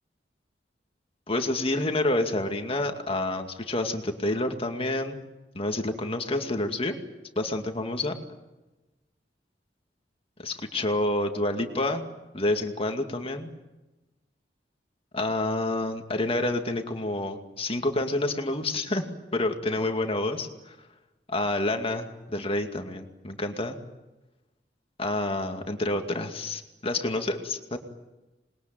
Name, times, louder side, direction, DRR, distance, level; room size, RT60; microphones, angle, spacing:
voice 1, 1.3-5.2 5.5-6.9 7.4-8.2 10.4-12.1 12.3-13.5 15.1-20.8 21.3-23.8 25.0-27.8, left 2 dB, 35° left, 5 dB, 2.3 m, -28 dB
27.5 x 21.5 x 9.1 m, 1.1 s
head